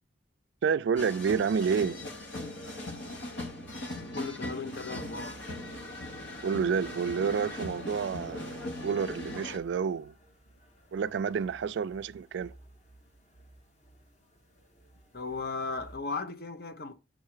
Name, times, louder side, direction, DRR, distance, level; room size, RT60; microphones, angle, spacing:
voice 1, 0.6-2.0 6.4-10.1 10.9-12.5, right 6 dB, 65° right, 0.3 m, -29 dB
sound 1, 1.0-9.6, left 1 dB, 75° left, 1.5 m, -39 dB
voice 2, 4.1-5.4 15.1-17.0, left 4 dB, 50° left, 0.8 m, -36 dB
sound 2, 4.9-16.0, right 1 dB, 35° left, 1.6 m, -58 dB
7.4 x 4.0 x 4.7 m
head